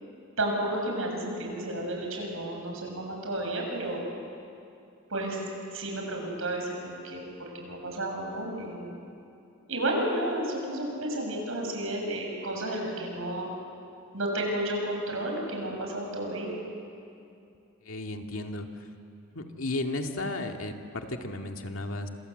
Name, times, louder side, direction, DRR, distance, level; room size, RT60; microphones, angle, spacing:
voice 1, 0.4-4.0 5.1-5.4 5.7-8.9 9.7-13.5 14.1-16.5, right 1 dB, 75° right, 1 dB, 7.0 m, -32 dB
voice 2, 17.9-18.7 19.3-22.1, left 2 dB, 75° left, 3 dB, 2.2 m, -34 dB
27.0 x 27.0 x 8.0 m, 2.5 s
head